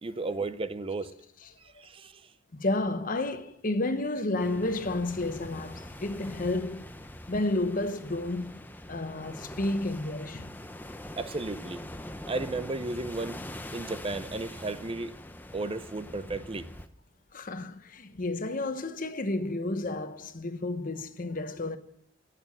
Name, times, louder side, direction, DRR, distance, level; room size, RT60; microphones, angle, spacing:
voice 1, 0.0-1.1 1.6-2.3 11.2-11.9 12.3-13.4 13.7-15.1 15.5-16.7, right 3 dB, 30° right, 0.6 m, -34 dB
voice 2, 2.5-6.9 7.3-8.6 8.9-10.5 17.3-21.8, left 2 dB, 45° left, 1.0 m, -31 dB
sound 1, 4.4-16.9, left 1 dB, 10° left, 0.7 m, -43 dB
19.5 x 6.8 x 7.2 m
head